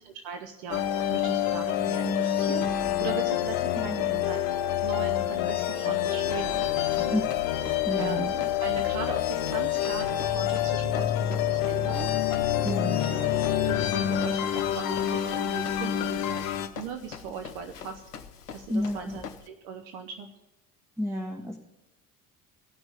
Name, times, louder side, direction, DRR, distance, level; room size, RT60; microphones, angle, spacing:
voice 1, 0.0-0.8 1.1-4.5 4.8-7.3 8.0-12.1 12.6-16.4 16.8-18.0 18.5-20.3, right 6 dB, 55° right, 6 dB, 1.0 m, -39 dB
sound 1, 0.7-16.7, left 11 dB, 50° left, 0.9 m, -27 dB
voice 2, 3.9-4.2 7.0-7.3 7.8-8.3 12.6-13.2 18.7-19.2 21.0-21.6, left 1 dB, 5° right, 2 dB, 1.1 m, -31 dB
Run, 6.2-19.5, left 7 dB, 85° left, 0.7 m, -44 dB
14.5 x 6.2 x 8.9 m, 1.0 s
figure-of-eight pair, 60°, 46 cm